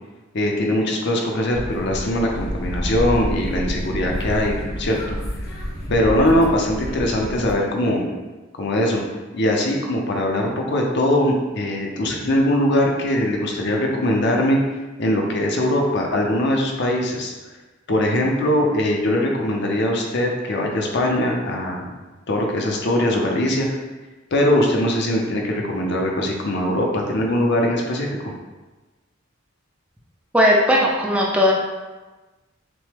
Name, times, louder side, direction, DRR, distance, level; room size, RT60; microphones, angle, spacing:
voice 1, 0.3-5.2 5.9-8.1 8.6-9.0 9.3-14.6 15.0-17.3 17.9-21.9 22.3-23.7 24.3-28.3, left 1 dB, 55° left, 0 dB, 0.7 m, -21 dB
sound 1, 1.5-7.5, equal, 75° left, 1.5 m, -29 dB
voice 2, 30.3-31.5, equal, 5° right, -3 dB, 0.5 m, -17 dB
6.0 x 2.2 x 3.4 m, 1.2 s
head